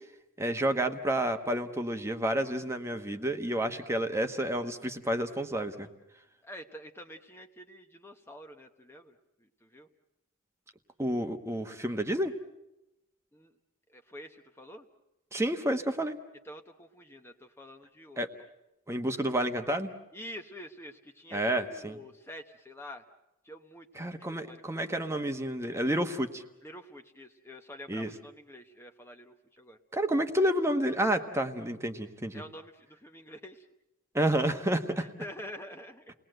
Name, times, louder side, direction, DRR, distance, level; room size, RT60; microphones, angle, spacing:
voice 1, 0.4-5.9 11.0-12.3 15.3-16.2 18.2-18.3 18.9-19.9 21.3-21.9 23.9-26.4 27.9-28.1 29.9-32.4 34.1-35.1, right 1 dB, 15° right, 6 dB, 1.2 m, -30 dB
voice 2, 6.4-9.9 13.3-13.5 13.9-14.9 16.4-18.2 20.1-23.0 23.4-24.9 26.6-29.8 32.3-33.7 35.0-36.1, equal, 10° left, 5 dB, 1.0 m, -47 dB
29.5 x 20.0 x 7.8 m, 0.92 s
head